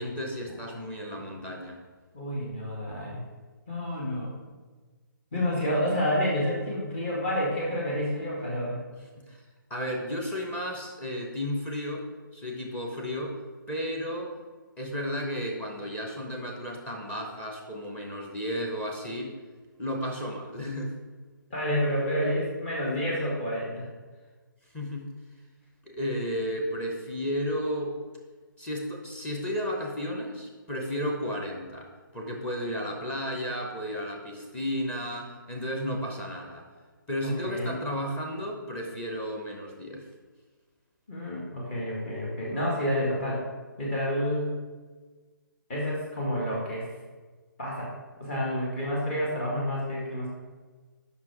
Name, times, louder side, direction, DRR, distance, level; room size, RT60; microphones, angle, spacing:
voice 1, 0.0-1.8 9.3-9.4 9.7-12.1 12.3-13.4 13.7-14.4 14.8-19.3 19.8-21.0 24.7-25.1 25.8-28.0 28.6-36.7 37.1-40.1, equal, 10° left, 0 dB, 0.9 m, -33 dB
voice 2, 2.1-3.2 3.7-4.3 5.3-8.8 21.5-23.9 37.2-37.8 41.1-43.4 43.8-44.6 45.7-46.9 47.6-47.9 48.2-50.3, equal, 35° left, -5 dB, 2.0 m, -29 dB
7.3 x 5.7 x 4.8 m, 1.4 s
figure-of-eight pair, 150°, 11 cm